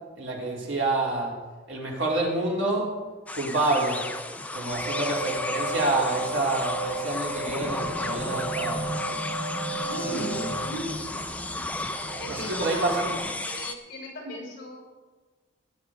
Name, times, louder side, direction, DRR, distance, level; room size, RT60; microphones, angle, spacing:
voice 1, 0.1-1.3 1.7-2.9 3.3-4.0 4.5-8.8 9.9-10.5 12.3-13.1, right 2 dB, 85° right, -3 dB, 3.3 m, -28 dB
sound 1, 3.3-13.7, left 2 dB, 10° left, 0.4 m, -33 dB
sound 2, 4.7-13.2, right 3 dB, 15° right, 4.2 m, -35 dB
voice 2, 9.8-10.9 12.1-13.1 13.4-14.8, equal, 50° left, -1 dB, 5.1 m, -36 dB
18.0 x 10.0 x 3.7 m, 1.3 s
head